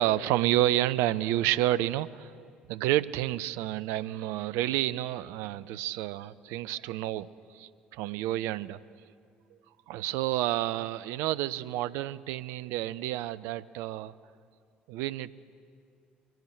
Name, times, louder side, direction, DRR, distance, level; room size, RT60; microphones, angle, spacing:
voice 1, 0.0-7.3 7.5-8.8 9.9-14.1 14.9-15.3, right 14 dB, 60° right, 16 dB, 0.4 m, -30 dB
24.0 x 15.0 x 3.3 m, 2.3 s
figure-of-eight pair, 50°, 5 cm